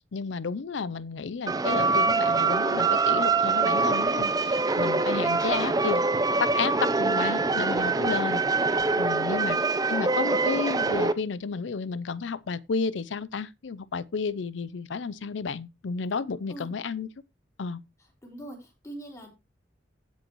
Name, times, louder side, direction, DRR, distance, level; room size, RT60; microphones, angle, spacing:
voice 1, 0.1-6.0 6.4-8.4 9.0-9.6 9.9-17.1 17.6-17.8, left 5 dB, 70° left, 0.5 m, -32 dB
sound 1, 1.5-11.1, right 3 dB, 20° right, 0.6 m, -24 dB
voice 2, 9.3-9.6 16.5-16.7 18.2-19.3, right 1 dB, 15° left, 3.1 m, -42 dB
16.0 x 5.3 x 3.0 m
head